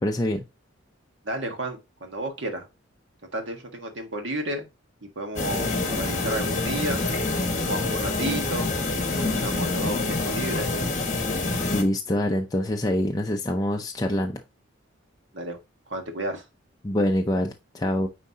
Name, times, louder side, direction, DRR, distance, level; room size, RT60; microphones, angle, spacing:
voice 1, 0.0-0.4 11.7-14.4 16.8-18.1, left 1 dB, 20° left, 0.5 m, -25 dB
voice 2, 1.2-2.7 3.3-4.7 5.1-7.0 7.7-8.7 9.2-10.7 15.3-15.6 15.9-16.4, right 2 dB, 60° right, 1.5 m, -32 dB
sound 1, 5.4-11.8, left 3 dB, 35° left, 1.7 m, -26 dB
9.4 x 3.7 x 2.8 m
head